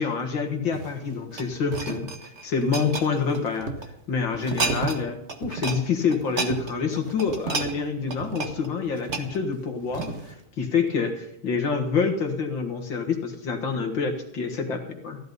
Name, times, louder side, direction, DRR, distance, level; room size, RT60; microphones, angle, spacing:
voice 1, 0.0-3.7 4.1-15.2, left 5 dB, 50° left, 4 dB, 1.8 m, -27 dB
sound 1, 0.7-3.9 4.3-5.0 5.3-5.8 6.1-10.4 10.9-11.1, right 4 dB, 45° right, 0.9 m, -31 dB
15.5 x 11.5 x 5.4 m, 0.79 s
omnidirectional pair, 3.4 m